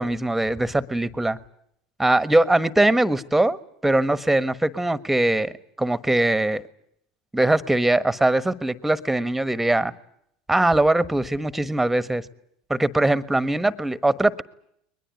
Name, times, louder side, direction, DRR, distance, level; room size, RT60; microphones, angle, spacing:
voice 1, 0.0-1.4 2.0-5.5 5.8-6.6 7.3-9.9 10.5-12.2 12.7-14.4, right 1 dB, 5° right, 14 dB, 1.4 m, -21 dB
22.0 x 20.5 x 9.8 m, 0.72 s
hypercardioid pair, 75°, 3 cm